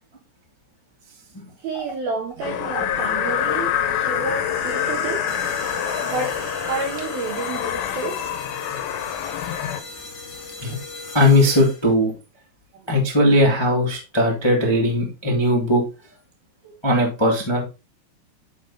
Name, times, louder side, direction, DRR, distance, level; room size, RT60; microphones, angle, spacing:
voice 1, 1.6-5.5 6.0-6.3 6.7-8.3, right 4 dB, 75° right, 3 dB, 2.3 m, -30 dB
sound 1, 1.8-1.9 2.2-7.5, right 3 dB, 50° right, 1.9 m, -39 dB
sound 2, 2.4-9.8, left 10 dB, 85° left, 3.7 m, -26 dB
sound 3, 5.3-12.0, left 3 dB, 30° left, 2.6 m, -37 dB
voice 2, 11.1-12.1 12.9-15.8 16.8-17.6, left 1 dB, 15° left, -1 dB, 1.0 m, -18 dB
11.0 x 5.3 x 4.2 m, 0.28 s
omnidirectional pair, 5.9 m